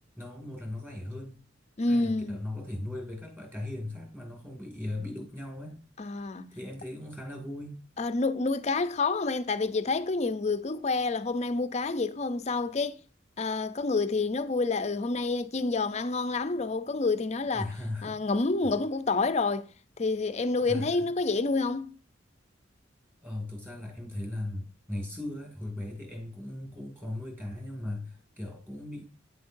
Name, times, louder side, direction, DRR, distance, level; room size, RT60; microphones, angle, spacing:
voice 1, 0.2-1.4 1.9-5.8 6.5-7.8 17.5-18.2 20.6-21.1 23.2-29.1, left 1 dB, 10° right, 2.1 m, -38 dB
voice 2, 1.8-2.4 6.0-6.5 8.0-13.0 13.4-17.7 18.0-19.7 20.0-21.9, left 3 dB, 35° left, 0.5 m, -28 dB
8.9 x 7.4 x 2.6 m
head